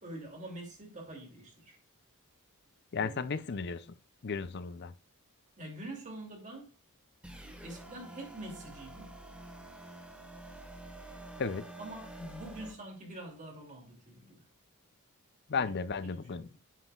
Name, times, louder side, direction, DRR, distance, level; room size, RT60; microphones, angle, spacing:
voice 1, 0.0-1.8 3.0-3.3 3.8-3.9 5.6-6.7 7.6-9.5 11.8-14.4 15.5-15.7 16.0-16.6, right 1 dB, 35° right, 2.8 m, -46 dB
voice 2, 2.9-3.8 4.2-4.9 11.4-11.6 15.5-16.5, left 5 dB, 50° left, 0.5 m, -34 dB
sound 1, 7.2-12.7, right 1 dB, 5° right, 1.4 m, -48 dB
9.3 x 7.9 x 2.4 m
head